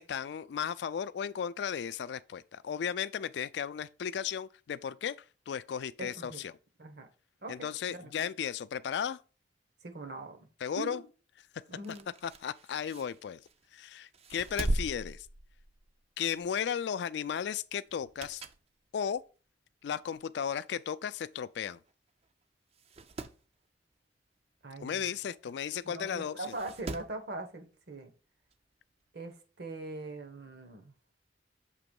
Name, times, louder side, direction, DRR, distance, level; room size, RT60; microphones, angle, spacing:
voice 1, 0.0-5.2 5.5-6.5 7.5-9.2 10.6-11.0 12.2-13.4 13.7-15.3 16.2-18.4 18.9-19.2 19.8-21.8 24.8-26.4, left 8 dB, 65° left, 0.3 m, -35 dB
voice 2, 6.0-6.5 6.8-7.1 7.4-8.2 9.8-10.5 10.8-11.0 11.7-12.1 24.6-25.1 25.8-28.1 29.1-30.9, right 2 dB, 60° right, 1.0 m, -42 dB
sound 1, 11.7-13.7 14.1-16.0 16.4-16.6 17.9-18.7 19.2-19.3 20.2-20.3 20.5-20.6 20.8-20.9 21.7-21.9 22.2-22.3 22.7-23.4 25.3-25.4 26.4-27.2 28.5-28.6, right 1 dB, 35° right, 0.4 m, -39 dB
6.8 x 3.0 x 5.2 m
head